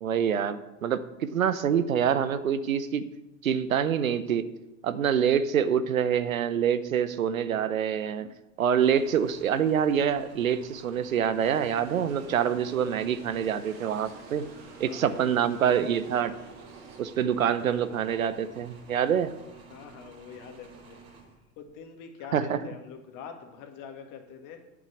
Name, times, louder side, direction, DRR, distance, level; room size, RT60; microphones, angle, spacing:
voice 1, 0.0-3.0 3.4-4.5 4.8-8.3 8.6-14.5 14.8-16.3 17.0-19.3 22.3-22.6, right 8 dB, 90° right, 13 dB, 0.8 m, -26 dB
sound 1, 8.8-21.8, right 4 dB, 35° right, 3.2 m, -52 dB
sound 2, 11.4-17.0, right 5 dB, 55° right, 2.6 m, -49 dB
voice 2, 14.9-15.3 19.7-21.0 21.6-24.6, left 7 dB, 50° left, 5 dB, 2.0 m, -44 dB
8.7 x 6.4 x 7.0 m, 1.0 s
hypercardioid pair, 85°, 40 cm